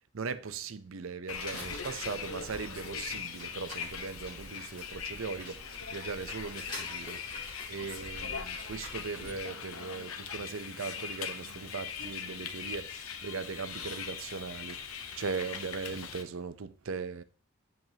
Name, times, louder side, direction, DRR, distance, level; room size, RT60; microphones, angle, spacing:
voice 1, 0.0-7.2 7.7-17.2, right 5 dB, 65° right, 0.6 m, -39 dB
Bus, 1.3-16.2, left 7 dB, 75° left, 1.0 m, -41 dB
sound 1, 1.4-9.4, left 1 dB, 20° left, 4.3 m, -47 dB
7.7 x 7.6 x 2.8 m
head